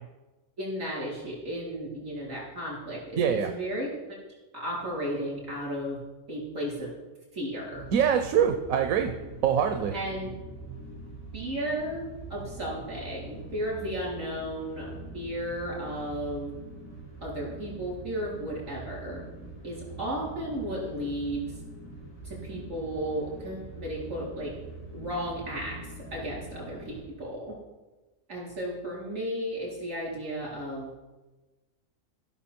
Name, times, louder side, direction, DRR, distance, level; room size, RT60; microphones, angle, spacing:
voice 1, 0.6-3.9 4.5-6.0 6.3-6.9 7.3-7.8 9.9-10.3 11.3-12.0 12.3-16.5 17.2-19.2 19.6-21.5 22.2-24.5 24.9-25.8 26.1-27.5 28.3-30.9, equal, 65° right, -5 dB, 4.4 m, -34 dB
voice 2, 3.2-3.5 7.9-9.1 9.4-9.9, right 8 dB, 85° right, 6 dB, 1.1 m, -24 dB
sound 1, 7.7-27.0, right 2 dB, 75° left, 3.6 m, -43 dB
16.0 x 5.9 x 4.4 m, 1.2 s
omnidirectional pair, 1.4 m